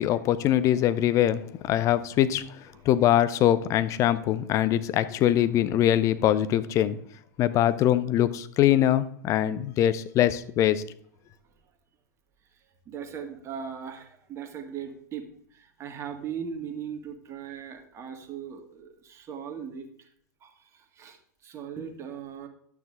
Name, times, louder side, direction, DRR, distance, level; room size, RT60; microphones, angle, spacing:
voice 1, 0.0-2.5 2.9-7.0 7.4-10.8, left 12 dB, 35° left, 13 dB, 0.8 m, -23 dB
voice 2, 12.5-20.1 20.4-22.5, right 7 dB, 30° right, 5 dB, 1.9 m, -39 dB
11.5 x 9.0 x 3.8 m, 0.62 s
figure-of-eight pair, 90°, 10 cm